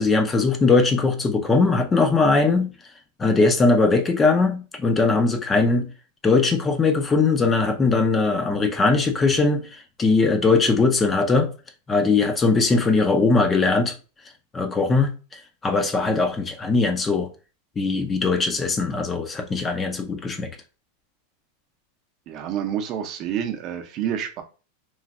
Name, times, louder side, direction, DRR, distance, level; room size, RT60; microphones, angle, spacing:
voice 1, 0.0-2.7 3.2-5.9 6.2-11.5 11.9-13.9 14.5-15.1 15.6-17.3 17.8-20.5, left 3 dB, 15° left, 0.4 m, -20 dB
voice 2, 22.3-24.4, right 9 dB, 40° right, 0.6 m, -28 dB
3.1 x 2.5 x 2.4 m
supercardioid pair, 130°, 0 cm